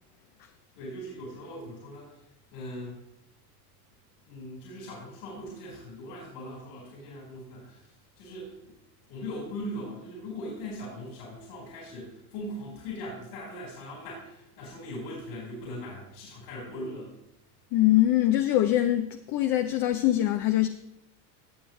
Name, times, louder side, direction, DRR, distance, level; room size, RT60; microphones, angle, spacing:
voice 1, 0.7-2.2 2.5-3.0 4.3-7.9 8.2-8.7 9.1-17.1, left 1 dB, 70° left, 4.6 m, -40 dB
voice 2, 17.7-20.7, left 14 dB, 50° left, 0.7 m, -23 dB
17.5 x 7.0 x 3.2 m
supercardioid pair, 110°, 47 cm